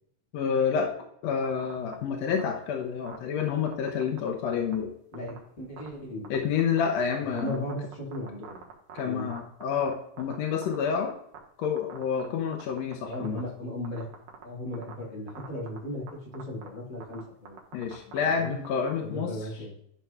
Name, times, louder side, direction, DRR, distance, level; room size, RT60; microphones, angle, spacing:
voice 1, 0.3-0.9 1.2-4.9 6.3-7.6 8.9-11.1 11.6-13.4 17.7-19.3, left 6 dB, 70° left, 2 dB, 1.6 m, -28 dB
sound 1, 1.4-1.9 2.3-2.5 3.1-4.3 4.5-4.7 5.1-5.4 5.8-5.9 6.2-7.0 7.4-10.4 10.6-11.4 11.6-12.3 12.5-13.4 13.8-14.4 14.7-14.9 15.3-15.8 16.1-16.2 16.3-16.7 17.0-18.9, right 9 dB, 70° right, 2.8 m, -43 dB
voice 2, 5.1-6.3 7.3-8.6 9.0-9.3 13.0-14.1 14.4-17.6 18.4-18.6 19.0-19.7, left 1 dB, 40° left, -3 dB, 2.1 m, -36 dB
11.5 x 5.9 x 2.4 m, 0.71 s
omnidirectional pair, 4.0 m